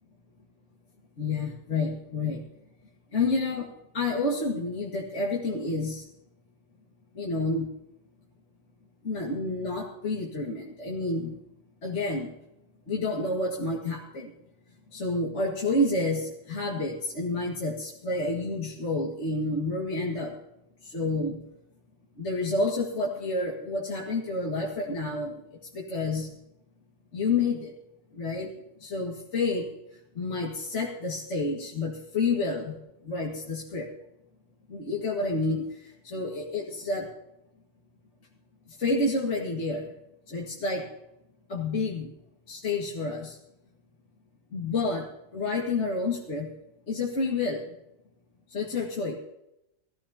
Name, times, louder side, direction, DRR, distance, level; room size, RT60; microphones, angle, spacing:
voice 1, 1.2-2.4 3.1-3.7 3.9-6.0 7.2-7.7 9.0-11.4 11.8-12.3 12.9-14.3 14.9-20.3 20.9-21.4 22.2-25.3 25.7-26.3 27.1-27.7 28.2-28.5 28.8-29.6 30.2-32.8 33.0-33.9 34.7-35.6 36.0-37.1 38.8-39.9 40.3-40.9 41.5-42.1 42.5-43.4 44.5-45.1 45.3-46.5 46.9-47.6 48.5-49.2, left 3 dB, 50° left, -2 dB, 2.2 m, -29 dB
19.5 x 15.0 x 2.8 m, 0.86 s
omnidirectional pair, 1.6 m